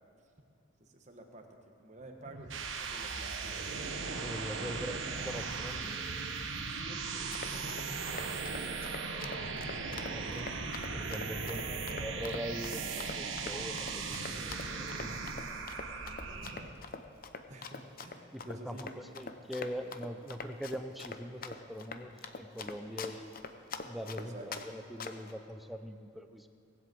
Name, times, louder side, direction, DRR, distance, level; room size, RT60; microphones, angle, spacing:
voice 1, 0.8-1.5 1.8-4.7 6.7-10.3 11.4-11.8 15.4-15.6 16.2-16.7 17.5-18.8 24.2-24.7, right 1 dB, 35° right, 3 dB, 1.4 m, -51 dB
loading core, 2.2-16.8, right 4 dB, 65° right, 1.1 m, -38 dB
voice 2, 4.2-6.0 10.1-10.6 10.9-15.6 18.3-23.3 23.8-26.5, equal, ahead, 7 dB, 0.5 m, -42 dB
Run, 7.1-24.7 25.0-25.3, left 4 dB, 45° left, 0.7 m, -44 dB
19.0 x 8.0 x 7.7 m, 2.4 s
head